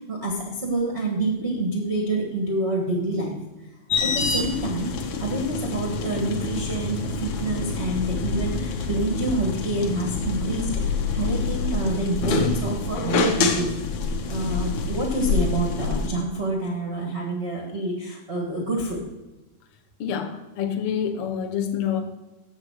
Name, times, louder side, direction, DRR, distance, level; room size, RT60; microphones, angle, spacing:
voice 1, 0.0-3.4 4.0-4.9 5.2-13.8 14.3-19.0, right 2 dB, 90° right, -2 dB, 0.5 m, -27 dB
sound 1, 3.9-16.1, left 4 dB, 70° left, 1.9 m, -26 dB
voice 2, 20.0-22.0, left 8 dB, 85° left, 3 dB, 1.2 m, -27 dB
8.1 x 7.5 x 6.4 m, 1.1 s
omnidirectional pair, 4.2 m